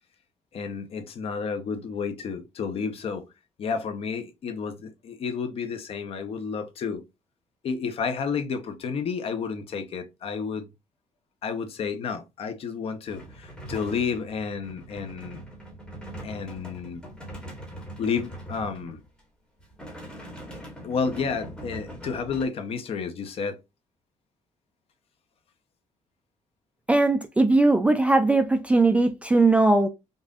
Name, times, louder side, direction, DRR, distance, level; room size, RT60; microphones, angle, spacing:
voice 1, 0.5-3.2 3.6-7.0 7.6-10.7 11.4-15.4 16.2-17.0 18.0-19.0 20.8-23.6, left 5 dB, 45° left, 0.9 m, -31 dB
sound 1, 13.1-19.2 19.6-22.4, right 1 dB, 5° left, 1.5 m, -42 dB
voice 2, 26.9-29.9, right 2 dB, 10° right, 0.3 m, -19 dB
5.4 x 2.5 x 2.5 m
cardioid pair, 165°, 13 cm